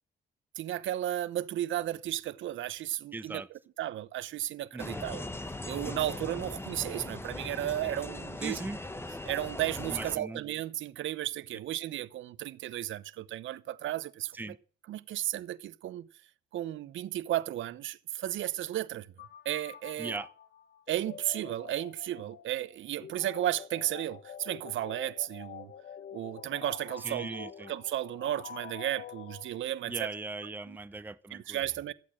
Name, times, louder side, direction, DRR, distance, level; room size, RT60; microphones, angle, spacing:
voice 1, 0.6-5.3 5.6-8.6 9.3-14.5 14.9-16.1 16.5-19.1 19.4-20.2 20.9-25.7 26.1-30.1 30.7-30.8 31.3-31.9, right 13 dB, 75° right, 0.9 m, -34 dB
voice 2, 3.1-3.5 4.7-5.1 8.4-8.8 9.9-10.4 14.3-14.6 20.0-20.3 27.0-27.7 29.9-31.6, right 3 dB, 10° right, 0.7 m, -39 dB
sound 1, 4.8-10.2, left 2 dB, 10° left, 1.3 m, -39 dB
sound 2, 19.2-29.9, left 9 dB, 60° left, 1.2 m, -47 dB
14.0 x 8.5 x 7.5 m
cardioid pair, 90°, 20 cm